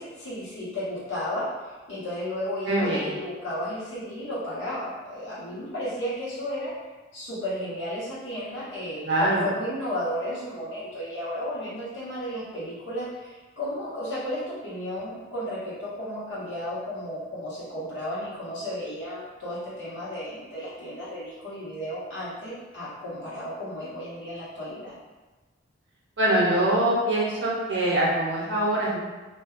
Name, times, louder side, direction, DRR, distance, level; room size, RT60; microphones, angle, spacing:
voice 1, 0.0-1.5 1.9-6.7 7.1-24.9, left 1 dB, 80° left, -10 dB, 1.1 m, -33 dB
voice 2, 2.7-3.1 9.0-9.5 26.2-29.0, right 1 dB, 65° right, -5 dB, 0.7 m, -23 dB
2.5 x 2.2 x 2.4 m, 1.2 s
head